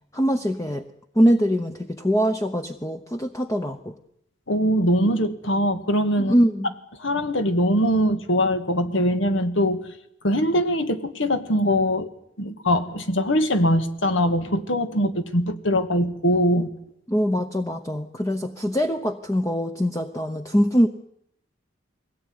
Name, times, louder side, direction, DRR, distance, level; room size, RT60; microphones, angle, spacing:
voice 1, 0.1-0.8 1.1-4.0 6.2-6.7 17.1-20.9, equal, 15° left, 7 dB, 0.9 m, -23 dB
voice 2, 4.5-6.3 7.0-9.9 10.2-12.1 12.4-16.7, equal, 75° left, 9 dB, 2.1 m, -22 dB
22.0 x 17.5 x 9.7 m, 0.75 s
head